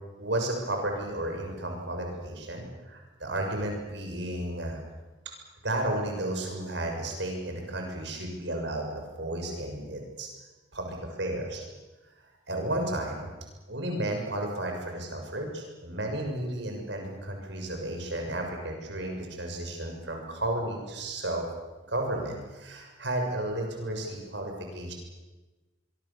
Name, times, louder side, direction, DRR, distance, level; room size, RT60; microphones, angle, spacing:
voice 1, 0.2-4.8 5.6-10.3 10.7-11.6 12.5-13.3 13.7-21.4 21.9-24.9, right 1 dB, 70° right, 2 dB, 6.5 m, -33 dB
25.0 x 23.5 x 7.1 m, 1.2 s
head